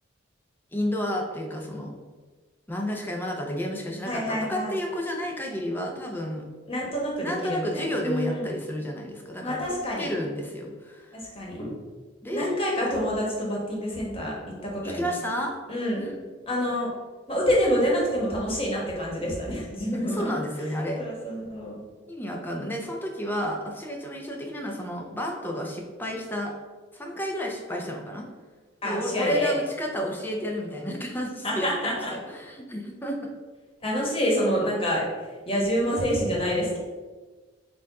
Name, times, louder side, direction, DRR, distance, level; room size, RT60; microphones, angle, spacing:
voice 1, 0.7-1.9 2.7-6.5 7.2-9.6 10.0-11.2 12.2-12.5 14.8-15.5 15.9-16.1 20.0-21.0 22.1-26.5 26.9-28.2 28.8-33.2, equal, 10° left, 1 dB, 0.5 m, -31 dB
voice 2, 4.0-4.7 6.7-8.5 9.4-10.1 11.1-11.7 12.3-14.3 14.6-15.1 15.7-16.0 16.5-16.9 17.3-20.4 21.0-21.8 28.8-29.5 31.4-32.1 33.8-35.0 35.5-36.8, equal, 30° left, -3 dB, 1.2 m, -27 dB
4.6 x 2.5 x 4.6 m, 1.4 s
head